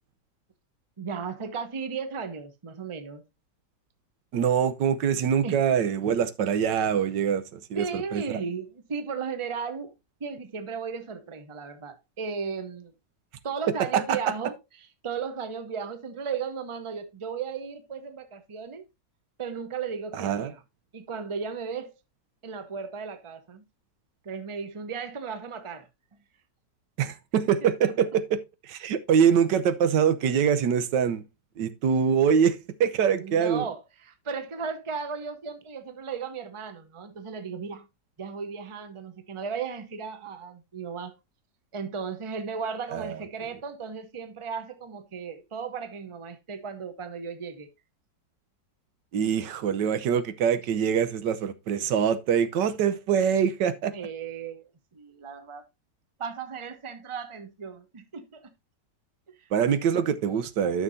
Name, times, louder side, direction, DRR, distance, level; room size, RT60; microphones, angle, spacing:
voice 1, 1.0-3.2 5.4-5.6 7.7-9.9 10.2-12.9 13.4-18.9 19.4-20.6 20.9-21.9 22.4-23.6 24.2-25.9 27.6-27.9 33.1-37.9 38.2-41.1 41.7-47.7 53.9-55.6 56.2-58.5 59.4-59.5, right 6 dB, 25° right, 0.7 m, -35 dB
voice 2, 4.3-7.8 8.1-8.4 13.7-14.2 20.2-20.5 27.0-31.2 31.6-33.6 42.9-43.1 49.1-53.9 59.5-60.8, right 7 dB, 90° right, 1.5 m, -24 dB
12.5 x 6.0 x 2.7 m
omnidirectional pair, 1.9 m